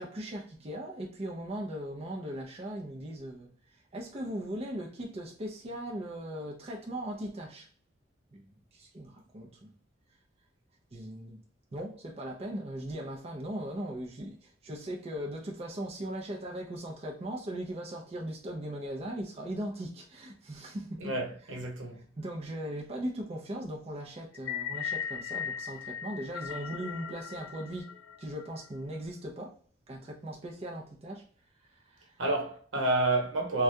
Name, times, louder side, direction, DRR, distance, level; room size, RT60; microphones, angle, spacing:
voice 1, 0.0-7.7 8.3-9.7 10.9-11.4 11.7-21.0 22.2-27.9 28.2-29.6 29.9-31.3 31.7-32.2, right 1 dB, 30° right, 0.5 m, -39 dB
voice 2, 21.0-22.0 32.2-33.6, right 2 dB, 85° right, 1.0 m, -29 dB
sound 1, 24.3-28.7, left 8 dB, 85° left, 0.3 m, -38 dB
3.3 x 2.3 x 2.6 m
head